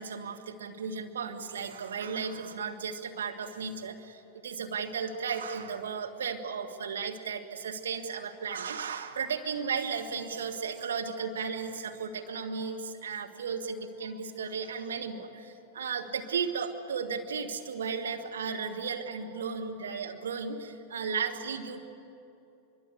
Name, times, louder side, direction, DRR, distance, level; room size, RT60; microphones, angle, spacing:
voice 1, 0.0-21.9, right 6 dB, 65° right, 3 dB, 1.9 m, -35 dB
23.5 x 22.5 x 8.3 m, 2.6 s
figure-of-eight pair, 90°, 0 cm